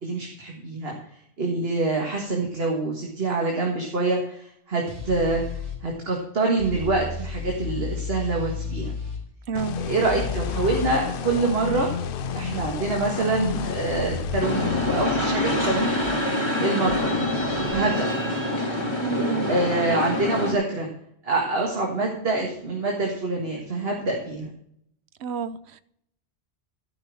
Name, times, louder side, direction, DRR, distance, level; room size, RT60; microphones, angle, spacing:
voice 1, 0.0-0.9 1.4-5.4 5.8-8.9 9.8-11.9 12.3-16.0 16.6-17.3 17.7-18.4 19.5-20.9 21.2-24.5, right 3 dB, 65° right, 0 dB, 2.0 m, -26 dB
sound 1, 4.9-5.8 6.6-9.2 10.0-10.9 11.7-12.6 13.4-16.1 16.9-17.7, left 5 dB, 45° right, 4.1 m, -34 dB
sound 2, 9.5-15.1, left 8 dB, 60° left, 0.7 m, -31 dB
voice 2, 9.5-9.8 19.0-19.5 25.2-25.8, right 5 dB, 80° right, 15 dB, 0.9 m, -30 dB
sound 3, 14.4-20.5, left 1 dB, 25° left, 2.3 m, -26 dB
12.5 x 6.2 x 6.2 m, 0.73 s
omnidirectional pair, 1.1 m